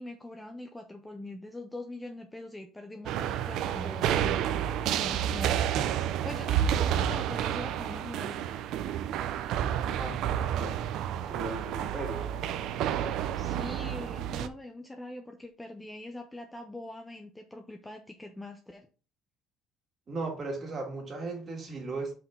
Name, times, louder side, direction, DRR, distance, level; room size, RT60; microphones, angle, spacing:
voice 1, 0.0-5.6 6.2-8.5 13.4-18.9, left 1 dB, 5° left, 0.5 m, -43 dB
sound 1, 3.1-14.5, right 10 dB, 55° right, 0.5 m, -30 dB
voice 2, 11.3-12.3 20.1-22.1, right 3 dB, 25° right, 1.7 m, -36 dB
5.8 x 4.6 x 3.6 m
cardioid pair, 170°, 0 cm